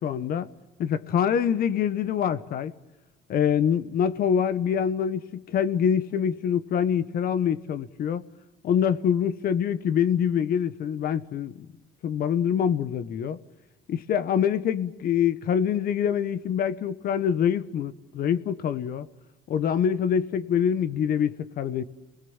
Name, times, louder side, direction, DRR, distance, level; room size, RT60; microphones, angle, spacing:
voice 1, 0.0-0.5 0.8-2.7 3.3-8.2 8.6-11.7 12.0-13.4 13.9-19.1 19.5-21.8, left 8 dB, 60° left, 1.3 m, -25 dB
30.0 x 20.5 x 7.3 m
cardioid pair, 110°, 17 cm